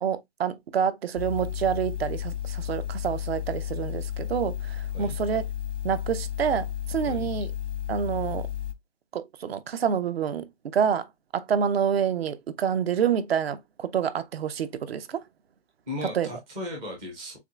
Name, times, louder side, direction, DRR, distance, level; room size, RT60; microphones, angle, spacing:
voice 1, 0.0-5.5 5.8-7.5 7.9-8.5 9.1-15.2 16.1-16.3, right 8 dB, 60° right, 0.7 m, -27 dB
sound 1, 1.2-8.7, left 10 dB, 90° left, 1.0 m, -33 dB
voice 2, 15.9-17.4, left 1 dB, 5° right, 0.4 m, -36 dB
7.0 x 2.4 x 2.3 m
hypercardioid pair, 150°, 35 cm